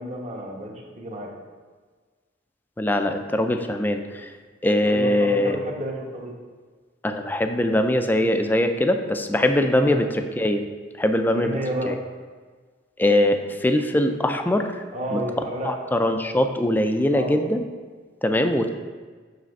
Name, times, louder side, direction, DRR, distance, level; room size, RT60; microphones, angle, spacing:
voice 1, 0.0-1.3 4.9-6.3 9.7-10.0 11.3-11.9 14.9-15.8 17.1-17.4, right 1 dB, 40° right, -1 dB, 1.1 m, -31 dB
voice 2, 2.8-4.3 4.6-5.6 7.0-10.6 11.0-11.6 11.9-12.0 13.0-14.7 15.1-15.2 15.6-17.6 18.2-18.7, left 1 dB, 10° left, 6 dB, 0.4 m, -22 dB
7.5 x 3.3 x 5.2 m, 1.5 s
head